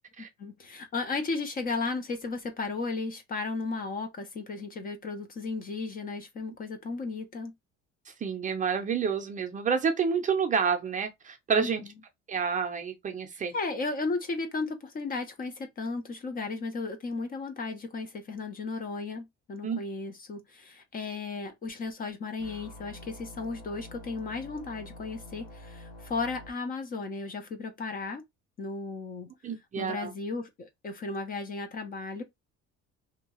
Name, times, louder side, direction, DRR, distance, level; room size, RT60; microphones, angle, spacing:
voice 1, 0.4-7.5 11.6-11.7 13.3-28.2 28.6-29.3 29.8-32.2, left 3 dB, 30° left, 0.5 m, -35 dB
voice 2, 8.1-11.8 12.3-13.5 19.6-19.8 29.4-30.1, right 6 dB, 25° right, 0.5 m, -29 dB
sound 1, 22.4-26.5, left 1 dB, 60° left, 0.8 m, -47 dB
2.7 x 2.3 x 2.9 m
cardioid pair, 150°, 29 cm